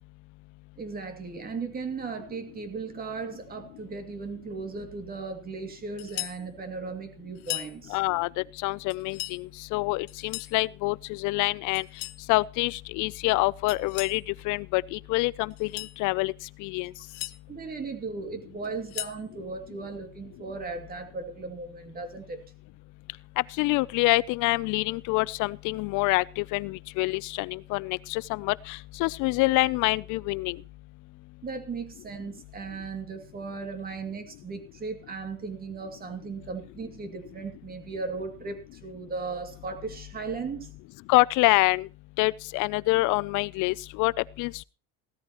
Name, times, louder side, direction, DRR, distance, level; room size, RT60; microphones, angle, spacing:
voice 1, 0.8-8.0 17.5-22.4 31.4-40.7, right 4 dB, 25° right, 2.5 m, -37 dB
sound 1, 6.0-6.4 7.4-7.7 8.9-9.4 10.1-10.6 11.7-12.2 13.7-14.2 15.5-16.0 16.8-17.4 18.6-19.2, left 23 dB, 85° left, 0.9 m, -37 dB
voice 2, 7.9-11.8 12.3-16.3 16.6-16.9 23.4-30.6 41.1-41.9 42.2-44.1 44.4-44.6, left 22 dB, 55° left, 0.6 m, -26 dB
16.5 x 13.0 x 3.0 m
cardioid pair, 150°, 36 cm